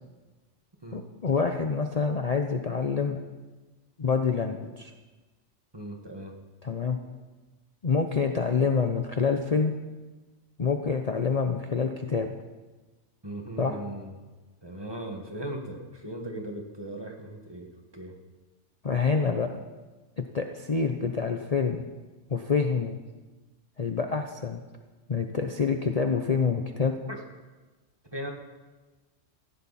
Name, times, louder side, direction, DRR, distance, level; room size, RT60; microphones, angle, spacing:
voice 1, 0.9-3.2 4.0-4.9 6.6-7.0 7.8-9.7 10.6-12.3 13.6-13.8 18.8-19.6 20.2-21.9 22.3-23.0 23.8-24.6 25.1-26.9, left 5 dB, 35° left, 5 dB, 0.8 m, -27 dB
voice 2, 5.7-6.3 13.2-14.1 14.6-17.7 17.9-18.1 27.1-27.2 28.1-28.3, right 1 dB, 20° right, 2 dB, 1.8 m, -38 dB
17.5 x 14.5 x 4.3 m, 1.3 s
omnidirectional pair, 1.2 m